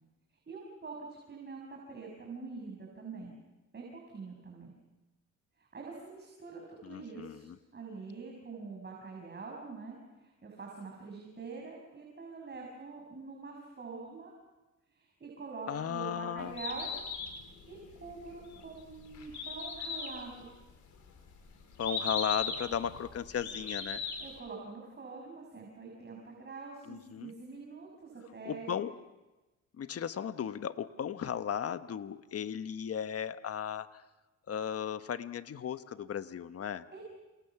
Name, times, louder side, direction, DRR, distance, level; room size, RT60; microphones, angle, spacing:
voice 1, 0.5-3.4 3.7-4.7 5.6-7.5 7.7-14.3 14.9-16.9 17.7-20.5 24.2-28.7 36.9-37.0, right 4 dB, 35° right, 0 dB, 6.3 m, -45 dB
voice 2, 6.8-7.6 15.7-16.6 21.8-24.0 26.8-27.3 28.4-28.9 29.8-34.0 34.5-36.9, left 8 dB, 50° left, 11 dB, 1.3 m, -36 dB
Bird, 16.4-24.4, left 5 dB, 70° left, 5.5 m, -39 dB
28.5 x 28.0 x 6.0 m, 1.1 s
cardioid pair, 90°, 30 cm